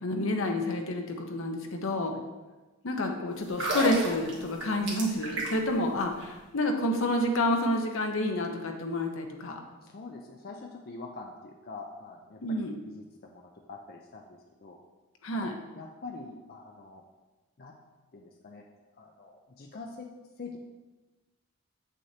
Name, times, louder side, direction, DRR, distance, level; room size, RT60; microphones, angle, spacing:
voice 1, 0.0-2.1 2.8-9.5 12.4-12.7 15.2-15.5, left 1 dB, 65° left, 3 dB, 0.8 m, -29 dB
sound 1, 3.4-5.8 6.1-6.2, right 2 dB, 55° right, 1.6 m, -32 dB
voice 2, 9.5-14.8 15.3-15.5 15.7-17.0 17.6-17.8 18.1-18.6 19.0-20.1 20.4-20.6, left 3 dB, 45° left, 0 dB, 0.5 m, -45 dB
8.0 x 6.3 x 2.8 m, 1.2 s
head